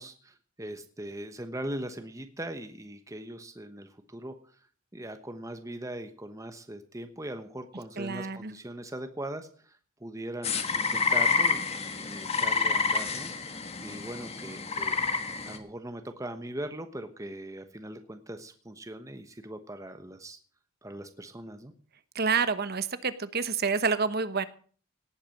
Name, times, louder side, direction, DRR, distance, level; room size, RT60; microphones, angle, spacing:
voice 1, 0.0-4.3 4.9-15.0 15.4-20.4 20.8-21.7, right 1 dB, 15° right, 8 dB, 1.1 m, -40 dB
voice 2, 8.0-8.5 22.1-24.5, right 5 dB, 50° right, 13 dB, 1.1 m, -28 dB
sound 1, 10.4-15.6, left 5 dB, 30° left, 1.6 m, -28 dB
18.0 x 8.5 x 6.4 m, 0.43 s
head